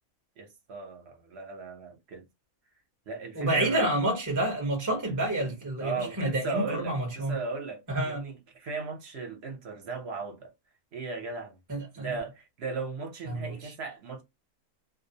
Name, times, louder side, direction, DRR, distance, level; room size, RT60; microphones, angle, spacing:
voice 1, 0.4-2.2 3.1-3.9 5.8-10.5 10.9-11.6 12.0-14.2, right 4 dB, 55° right, 0.9 m, -37 dB
voice 2, 3.3-7.4 7.9-8.2 11.7-12.2 13.3-13.7, right 1 dB, 20° right, 0.5 m, -29 dB
2.6 x 2.0 x 2.7 m
omnidirectional pair, 1.5 m